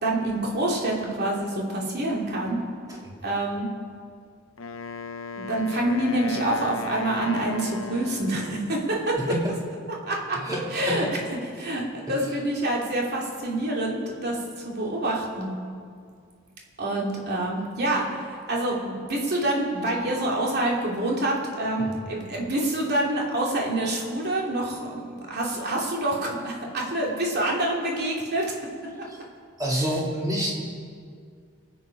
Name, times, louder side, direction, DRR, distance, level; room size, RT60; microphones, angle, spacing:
voice 1, 0.0-2.6 3.2-3.7 5.3-9.2 10.0-10.4 10.7-11.1 11.5-15.5 16.8-28.5 29.0-29.1, right 1 dB, 50° right, -2 dB, 2.9 m, -27 dB
Wind instrument woodwind instrument, 4.6-8.7, left 4 dB, 70° left, 0.8 m, -36 dB
voice 2, 9.2-9.5 10.3-11.0 12.1-12.2 21.8-21.9 29.1-29.2 29.6-30.6, equal, 20° right, -4 dB, 2.9 m, -28 dB
25.5 x 8.6 x 5.3 m, 2.2 s
head